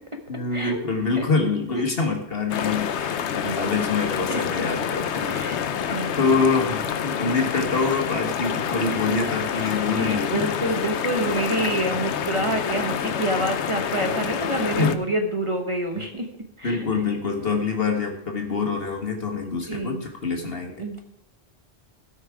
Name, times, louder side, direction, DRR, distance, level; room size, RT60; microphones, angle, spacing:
voice 1, 0.3-5.4 6.2-10.5 14.8-15.0 16.0-16.1 16.6-20.8, left 4 dB, 60° left, 3 dB, 1.7 m, -25 dB
sound 1, 2.5-14.9, left 8 dB, 85° left, 1.0 m, -27 dB
voice 2, 3.0-3.8 4.3-4.4 5.3-6.4 9.9-16.3 16.6-16.8 19.7-20.0 20.8-21.0, right 1 dB, 30° right, 4 dB, 1.1 m, -28 dB
16.5 x 5.7 x 4.8 m, 0.79 s
omnidirectional pair, 1.1 m